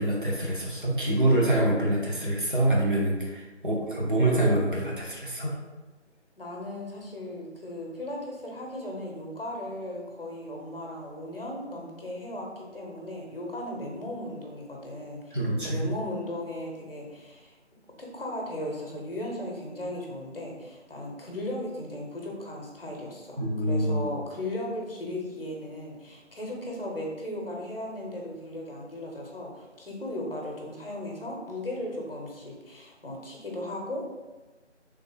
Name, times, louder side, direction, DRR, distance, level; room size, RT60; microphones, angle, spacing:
voice 1, 0.0-5.5 15.3-15.9 23.4-24.0, right 1 dB, 45° right, -3 dB, 0.7 m, -25 dB
voice 2, 6.4-15.4 15.6-17.6 18.0-34.1, left 1 dB, 50° left, -1 dB, 0.7 m, -36 dB
3.3 x 2.0 x 3.3 m, 1.2 s
figure-of-eight pair, 165°, 35 cm